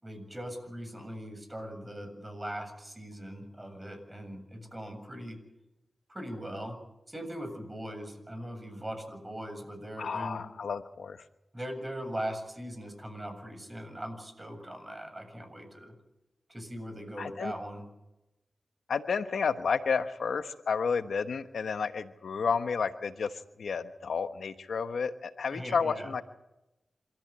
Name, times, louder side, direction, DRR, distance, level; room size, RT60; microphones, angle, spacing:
voice 1, 0.0-5.4 6.1-6.8 7.1-10.4 11.5-15.9 16.5-17.8 25.5-26.1, equal, 20° right, 7 dB, 7.5 m, -40 dB
voice 2, 10.0-11.2 17.2-17.5 18.9-26.2, left 5 dB, 85° left, 10 dB, 1.1 m, -31 dB
27.5 x 14.5 x 8.9 m, 0.92 s
cardioid pair, 50°, 0 cm